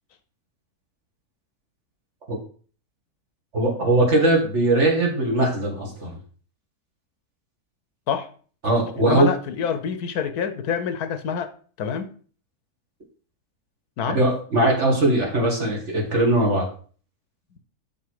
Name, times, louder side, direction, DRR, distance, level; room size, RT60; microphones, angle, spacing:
voice 1, 3.5-6.2 8.6-9.3 14.1-16.7, right 2 dB, 50° right, 0 dB, 2.3 m, -20 dB
voice 2, 9.0-11.5 11.8-12.1 14.0-14.2, left 7 dB, 75° left, 10 dB, 1.3 m, -26 dB
7.2 x 5.8 x 4.8 m, 0.43 s
omnidirectional pair, 1.6 m